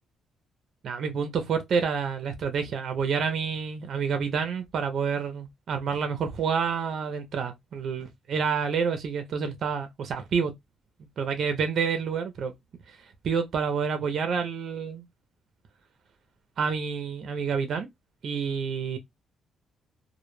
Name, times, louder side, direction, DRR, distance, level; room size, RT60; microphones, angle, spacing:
voice 1, 0.8-10.5 11.2-12.5 13.2-15.0 16.6-17.9 18.2-19.0, right 6 dB, 60° right, 0.5 m, -28 dB
2.1 x 2.1 x 3.0 m
cardioid pair, 90°, 0 cm